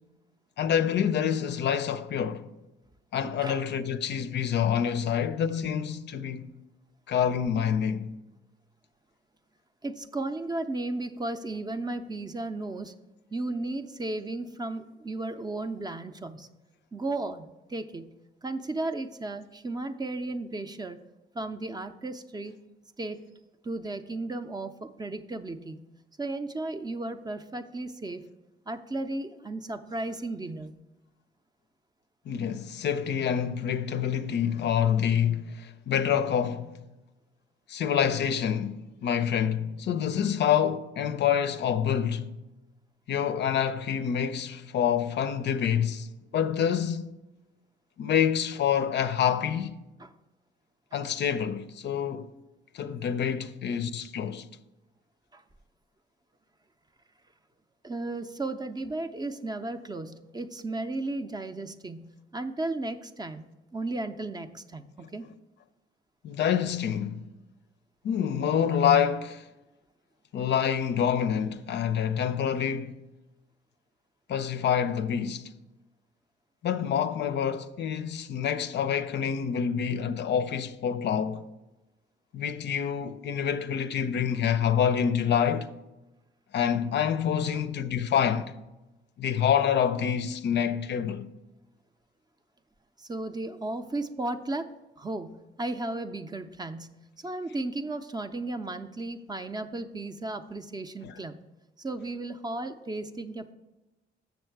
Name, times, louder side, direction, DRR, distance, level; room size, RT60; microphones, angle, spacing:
voice 1, 0.6-2.5 3.1-6.5 7.1-8.1 32.3-36.8 37.7-42.4 43.1-47.0 48.0-49.8 50.9-52.3 52.7-54.5 66.2-67.2 68.0-69.5 70.3-73.0 74.3-75.5 76.6-81.5 82.3-85.7 86.5-88.5 89.2-91.3 101.0-101.1, left 8 dB, 60° left, 0.5 m, -27 dB
voice 2, 9.8-12.9 13.3-16.5 16.9-18.1 18.4-21.0 21.3-22.6 23.0-23.2 23.6-25.8 26.2-28.3 28.7-30.7 50.0-50.1 55.3-55.4 57.8-65.3 87.5-87.6 93.0-101.4 101.8-103.5, right 2 dB, 20° right, 0.5 m, -35 dB
7.0 x 6.5 x 4.6 m
cardioid pair, 90°, 20 cm